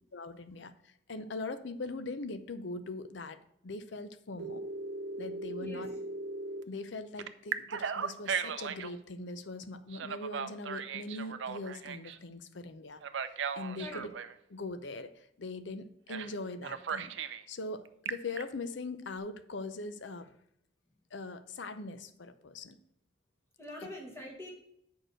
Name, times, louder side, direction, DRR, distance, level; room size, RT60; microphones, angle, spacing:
voice 1, 0.1-4.6 5.2-5.9 6.7-14.1 14.5-17.1 17.5-20.3 21.1-22.8, left 3 dB, 70° left, 11 dB, 0.6 m, -41 dB
Telephone, 4.4-6.6 7.2-8.9 9.9-12.2 13.0-14.3 16.1-16.3 16.6-17.4 17.9-18.4, right 5 dB, 70° right, 0.5 m, -37 dB
voice 2, 5.6-6.0 13.8-14.0 23.6-24.5, left 1 dB, 15° left, -1 dB, 1.7 m, -44 dB
6.6 x 4.8 x 6.3 m, 0.75 s
head